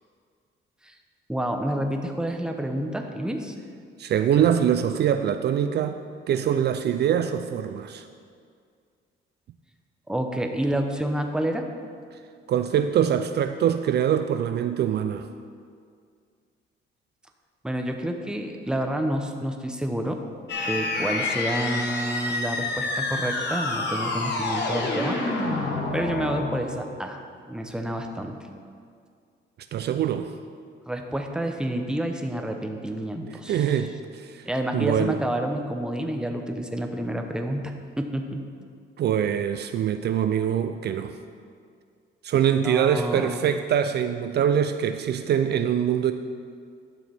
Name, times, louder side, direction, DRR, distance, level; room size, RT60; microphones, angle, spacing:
voice 1, 1.3-3.5 10.1-11.7 17.6-20.2 20.6-25.2 25.9-27.2 27.5-28.4 30.9-33.9 34.5-38.4 42.6-43.6, right 1 dB, 5° right, 4 dB, 0.8 m, -29 dB
voice 2, 4.0-6.0 6.3-8.1 12.5-15.3 29.7-30.3 33.3-34.5 34.7-35.2 39.0-41.1 42.2-46.1, right 9 dB, 55° right, 9 dB, 0.4 m, -24 dB
sound 1, 20.5-27.0, left 2 dB, 60° left, 1.3 m, -28 dB
11.0 x 6.4 x 3.5 m, 2.2 s
cardioid pair, 90°, 20 cm